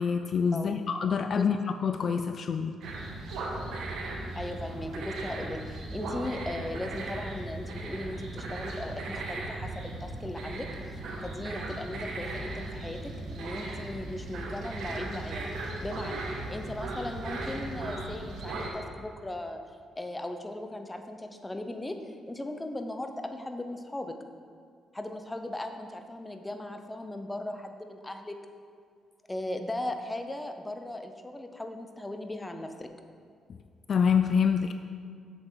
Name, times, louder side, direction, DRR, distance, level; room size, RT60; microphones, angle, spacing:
voice 1, 0.0-2.8 33.5-33.6 33.9-34.7, left 6 dB, 50° left, 8 dB, 0.3 m, -26 dB
sound 1, 2.8-18.7, right 2 dB, 75° right, 1.3 m, -37 dB
voice 2, 4.3-15.5 15.8-19.6 20.0-24.1 24.9-28.4 29.3-32.9, left 1 dB, 15° left, 6 dB, 0.7 m, -38 dB
7.7 x 7.2 x 3.9 m, 2.2 s
cardioid pair, 90°, 0 cm